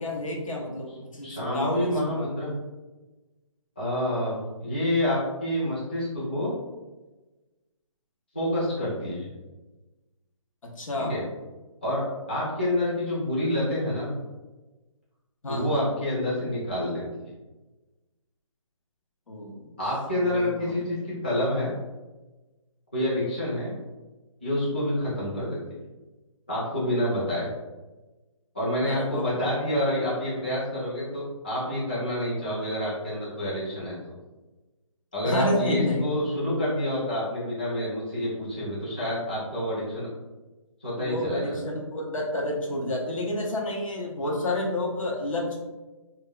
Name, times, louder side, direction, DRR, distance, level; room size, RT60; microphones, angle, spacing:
voice 1, 0.0-2.3 10.8-11.2 15.4-15.8 19.3-19.7 20.2-20.7 28.8-29.2 35.2-36.1 40.9-45.6, left 1 dB, 70° left, -1 dB, 0.8 m, -30 dB
voice 2, 1.2-2.5 3.8-6.5 8.3-9.3 11.1-11.2 11.8-12.0 12.3-14.1 15.5-17.2 19.8-21.7 22.9-23.7 24.4-25.6 26.5-27.5 28.5-34.1 35.1-40.1 40.8-41.5, left 1 dB, 20° left, -9 dB, 0.5 m, -28 dB
2.2 x 2.1 x 3.6 m, 1.1 s
hypercardioid pair, 180°, 17 cm